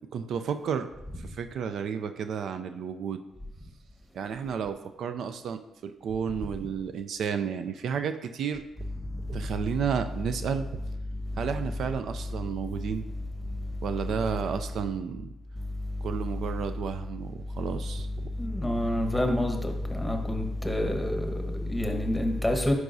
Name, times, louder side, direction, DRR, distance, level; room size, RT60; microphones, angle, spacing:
voice 1, 0.1-3.2 4.1-8.6 9.3-10.7 11.4-13.1 13.8-15.3 16.0-18.3, right 7 dB, 70° right, 9 dB, 0.4 m, -32 dB
voice 2, 18.4-22.7, left 1 dB, 5° left, 3 dB, 1.2 m, -27 dB
10.5 x 4.7 x 2.7 m, 0.97 s
cardioid pair, 70°, 0 cm